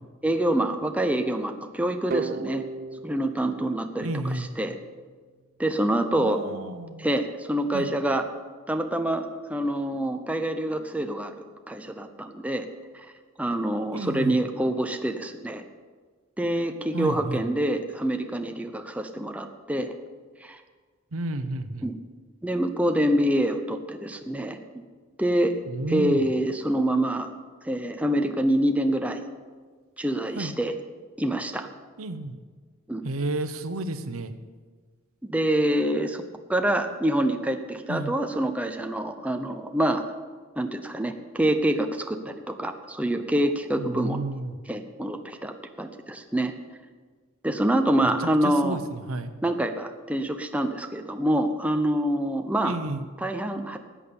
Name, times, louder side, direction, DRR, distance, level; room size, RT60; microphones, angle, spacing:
voice 1, 0.2-2.6 3.0-4.1 4.3-4.8 5.6-6.4 7.0-8.2 8.7-11.3 11.7-12.7 12.9-13.1 13.4-15.6 16.4-19.9 20.4-20.6 21.8-21.9 22.4-24.6 25.2-25.5 25.9-27.3 27.6-29.2 30.0-30.7 31.2-31.7 32.9-33.0 35.2-36.2 36.5-40.0 40.6-44.2 44.7-46.5 47.4-48.8 49.4-52.8 53.2-53.8, right 1 dB, 5° right, 6 dB, 0.7 m, -26 dB
sound 1, 2.1-4.9, right 3 dB, 45° right, 0.4 m, -36 dB
voice 2, 4.0-4.5 6.2-7.1 7.7-7.9 13.9-14.4 16.9-17.4 21.1-21.9 25.6-26.3 30.3-30.5 32.0-32.4 33.0-34.3 37.9-38.1 43.8-44.6 48.2-49.3 52.6-53.1, right 2 dB, 90° right, 10 dB, 0.9 m, -31 dB
13.5 x 8.7 x 7.0 m, 1.5 s
head